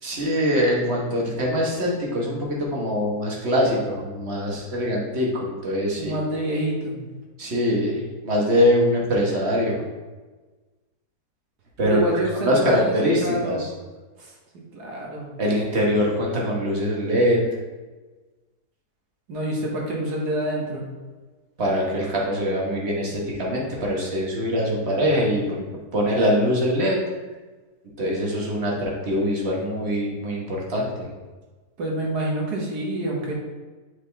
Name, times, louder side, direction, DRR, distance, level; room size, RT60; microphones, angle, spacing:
voice 1, 0.0-6.1 7.4-9.8 11.8-12.0 12.3-13.7 15.4-17.4 21.6-27.0 28.0-31.1, equal, 45° right, -3 dB, 1.5 m, -23 dB
voice 2, 6.0-6.9 11.8-13.6 14.2-14.3 14.7-15.3 19.3-20.9 31.8-33.3, right 1 dB, 85° right, -2 dB, 1.9 m, -27 dB
7.9 x 3.8 x 3.4 m, 1.3 s
omnidirectional pair, 1.7 m